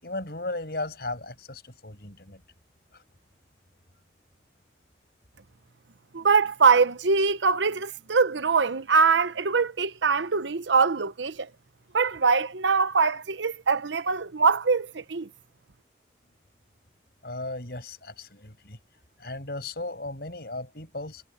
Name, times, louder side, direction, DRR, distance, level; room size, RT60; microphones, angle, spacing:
voice 1, 0.0-2.4 2.9-3.0 17.2-18.8 19.2-21.2, left 2 dB, 60° left, 7.3 m, -36 dB
voice 2, 6.1-11.5 11.9-15.3, right 5 dB, 90° right, 0.9 m, -23 dB
head